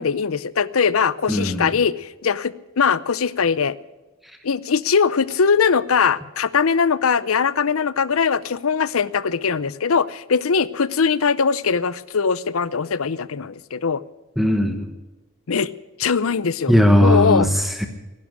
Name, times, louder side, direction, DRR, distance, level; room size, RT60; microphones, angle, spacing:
voice 1, 0.0-3.8 4.4-14.0 15.5-15.7 16.0-17.5, left 6 dB, 80° left, 18 dB, 0.7 m, -21 dB
voice 2, 1.3-1.7 14.4-14.9 16.7-17.9, equal, ahead, 6 dB, 1.1 m, -18 dB
16.0 x 11.0 x 8.1 m, 1.1 s
head